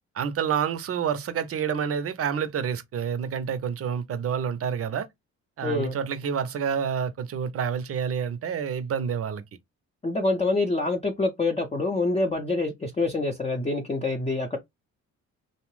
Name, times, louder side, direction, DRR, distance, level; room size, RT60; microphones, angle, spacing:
voice 1, 0.1-5.1 5.6-9.4, right 7 dB, 50° right, 0.6 m, -28 dB
voice 2, 5.6-6.0 10.0-14.6, left 2 dB, 20° left, 0.6 m, -26 dB
2.7 x 2.0 x 3.1 m
cardioid pair, 90°, 30 cm